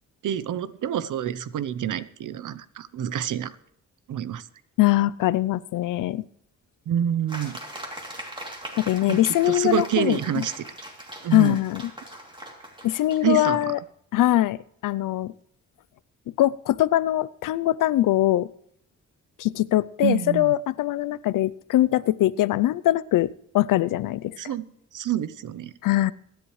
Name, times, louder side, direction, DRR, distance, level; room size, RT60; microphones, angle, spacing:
voice 1, 0.2-3.6 4.1-4.5 6.9-7.6 9.1-9.2 9.5-10.6 11.2-11.6 13.2-13.6 20.0-20.5 24.4-24.6 24.9-25.7, right 10 dB, 75° right, 16 dB, 0.8 m, -27 dB
voice 2, 4.8-6.2 8.8-10.2 11.3-11.8 12.8-13.8 14.1-14.6 14.8-15.3 16.4-18.5 19.4-23.3 23.5-24.4 25.8-26.1, left 15 dB, 85° left, 20 dB, 0.5 m, -22 dB
sound 1, 7.3-13.7, right 1 dB, 15° right, 2.9 m, -40 dB
23.5 x 10.5 x 3.2 m, 0.73 s
cardioid pair, 105°, 31 cm